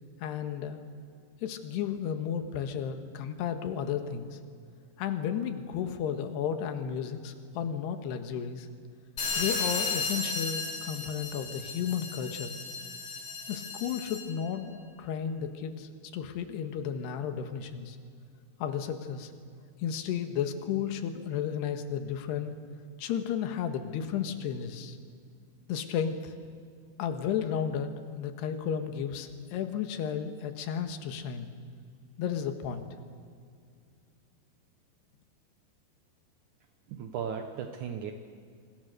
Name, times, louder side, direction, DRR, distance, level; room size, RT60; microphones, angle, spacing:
voice 1, 0.2-0.8 1.4-4.4 5.0-8.7 9.4-12.5 13.5-18.0 18.6-19.3 19.8-22.5 23.0-25.0 25.7-26.3 27.0-27.9 28.2-31.5 32.2-32.9, left 8 dB, 70° left, 7 dB, 3.4 m, -33 dB
sound 1, 9.2-14.4, left 4 dB, 35° left, 5.3 m, -34 dB
voice 2, 36.9-38.1, right 7 dB, 80° right, 5 dB, 1.7 m, -36 dB
27.0 x 25.0 x 6.7 m, 2.2 s
omnidirectional pair, 5.2 m